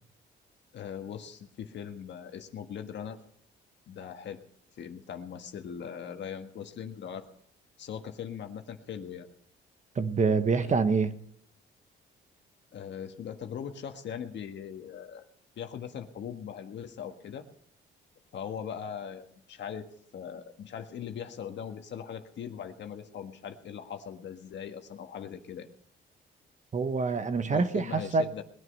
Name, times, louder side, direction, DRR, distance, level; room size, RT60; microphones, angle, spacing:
voice 1, 0.7-3.2 3.9-4.4 4.8-7.3 7.8-9.3 10.7-10.8 12.7-15.2 15.6-17.4 18.3-19.9 20.1-25.7 27.5-28.4, left 8 dB, 65° left, 1.7 m, -40 dB
voice 2, 9.9-11.1 26.7-28.2, right 4 dB, 40° right, 1.1 m, -26 dB
20.5 x 10.0 x 5.5 m
cardioid pair, 90°, 20 cm